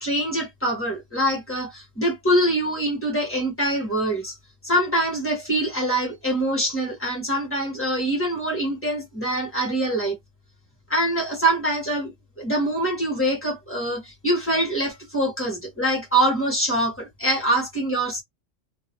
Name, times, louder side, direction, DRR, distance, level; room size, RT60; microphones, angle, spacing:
voice 1, 0.0-4.4 4.6-10.2 10.9-12.1 12.4-18.2, right 1 dB, 10° left, 1.3 m, -24 dB
2.8 x 2.6 x 2.9 m
omnidirectional pair, 1.3 m